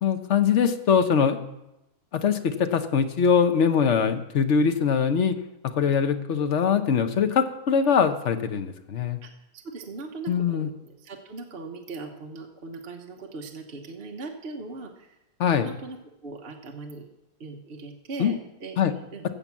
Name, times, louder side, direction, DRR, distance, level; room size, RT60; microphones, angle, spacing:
voice 1, 0.0-1.4 2.1-5.4 5.6-9.2 10.3-10.7 15.4-15.7 18.2-18.3 18.8-18.9, left 6 dB, 55° left, 8 dB, 1.1 m, -22 dB
voice 2, 9.2-15.2 15.6-17.1 17.4-18.8 19.1-19.2, right 3 dB, 40° right, 2 dB, 1.3 m, -39 dB
16.0 x 5.9 x 7.3 m, 0.91 s
omnidirectional pair, 1.7 m